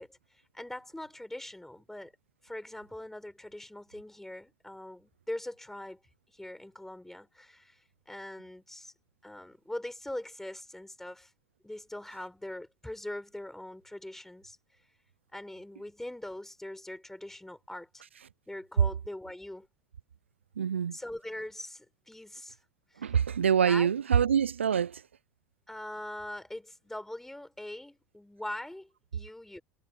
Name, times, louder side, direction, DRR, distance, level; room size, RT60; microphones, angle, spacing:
voice 1, 0.0-2.1 2.4-6.0 6.3-8.9 9.2-11.3 11.6-14.6 15.3-18.0 18.5-19.7 20.9-22.6 22.9-23.2 23.6-23.9 25.7-29.6, left 1 dB, 5° left, 5.9 m, -42 dB
voice 2, 20.6-21.0 23.0-25.0, right 8 dB, 85° right, 0.4 m, -25 dB
figure-of-eight pair, 75°, 6 cm